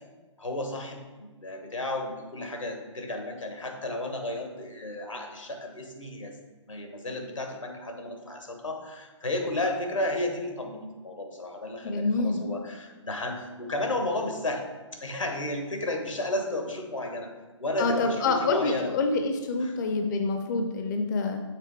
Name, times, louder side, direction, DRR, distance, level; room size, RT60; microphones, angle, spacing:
voice 1, 0.4-6.3 6.7-14.6 14.9-17.3 17.6-18.9 19.6-19.8, left 1 dB, 85° left, 3 dB, 1.2 m, -33 dB
voice 2, 11.8-12.4 17.8-21.4, left 3 dB, 40° left, 5 dB, 0.5 m, -27 dB
6.6 x 3.7 x 4.7 m, 1.3 s
figure-of-eight pair, 130°, 16 cm